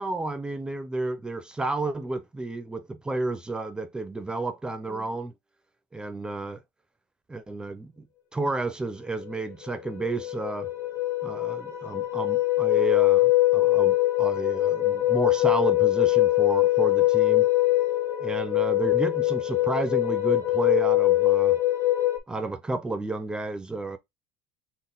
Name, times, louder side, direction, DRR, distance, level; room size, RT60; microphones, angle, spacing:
voice 1, 0.0-5.3 5.9-6.6 7.3-8.0 8.3-10.7 11.2-17.5 18.2-21.6 22.3-24.0, right 2 dB, 10° right, 0.5 m, -31 dB
sound 1, 9.3-9.4 9.7-22.2, left 17 dB, 40° left, 0.9 m, -23 dB
3.9 x 2.1 x 3.8 m
supercardioid pair, 115°, 7 cm